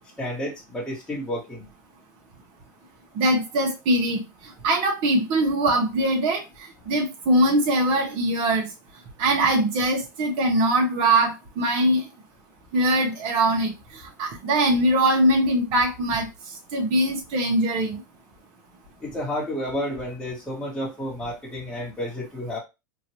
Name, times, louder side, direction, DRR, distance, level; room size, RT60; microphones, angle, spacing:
voice 1, 0.2-1.7 19.0-22.6, left 1 dB, 10° left, 1.2 m, -31 dB
voice 2, 3.1-4.2 4.6-6.4 6.9-8.7 9.2-12.0 12.7-13.7 14.2-16.3 16.7-18.0, right 1 dB, 50° right, 1.1 m, -22 dB
3.0 x 2.6 x 3.0 m
supercardioid pair, 130°, 10 cm